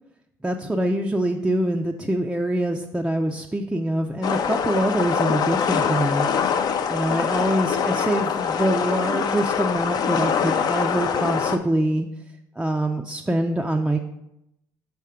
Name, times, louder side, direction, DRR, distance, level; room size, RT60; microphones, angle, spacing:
voice 1, 0.4-12.1 12.6-14.0, right 1 dB, 10° right, 1 dB, 0.4 m, -24 dB
sound 1, 4.2-11.6, left 7 dB, 50° left, 0.5 m, -24 dB
5.7 x 3.6 x 5.6 m, 0.85 s
supercardioid pair, 85°, 9 cm